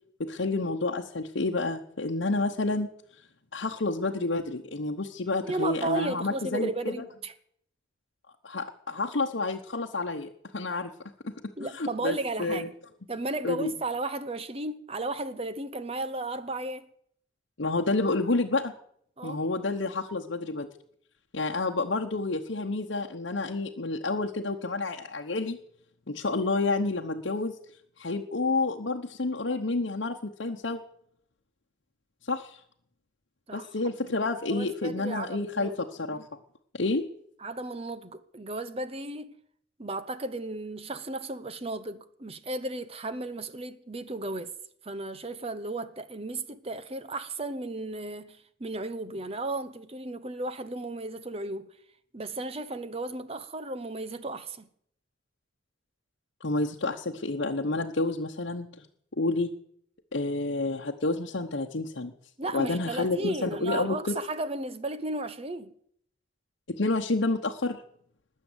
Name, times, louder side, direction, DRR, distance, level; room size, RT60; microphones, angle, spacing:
voice 1, 0.2-2.9 3.5-6.9 8.4-10.9 11.2-11.3 11.7-12.7 13.4-13.7 17.6-18.7 19.2-20.7 21.3-25.6 26.1-27.5 28.0-30.8 32.3-32.6 33.5-36.3 36.7-37.0 56.4-58.7 59.2-59.5 60.1-62.1 62.5-64.2 66.7-67.8, left 3 dB, 70° left, 1.0 m, -29 dB
voice 2, 5.4-7.3 11.6-12.7 13.1-16.9 19.2-19.4 33.5-33.7 34.5-35.7 37.4-39.4 39.8-44.5 44.8-51.7 52.1-54.7 62.4-65.7, right 2 dB, 30° right, 0.8 m, -34 dB
20.0 x 7.5 x 8.0 m
head